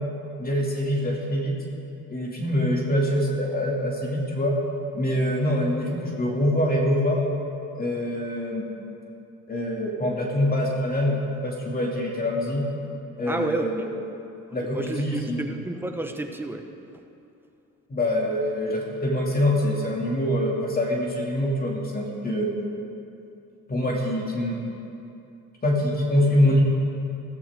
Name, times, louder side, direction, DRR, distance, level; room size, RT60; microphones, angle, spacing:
voice 1, 0.4-1.6 2.1-4.6 4.9-7.2 7.8-8.7 9.5-12.7 13.2-13.8 14.5-15.4 17.9-22.5 23.7-24.6 25.6-26.6, left 1 dB, 30° left, -2 dB, 2.5 m, -24 dB
voice 2, 13.3-13.9 14.6-16.6, right 1 dB, 5° right, 4 dB, 1.1 m, -30 dB
14.5 x 13.5 x 3.7 m, 2.8 s
cardioid pair, 85°, 31 cm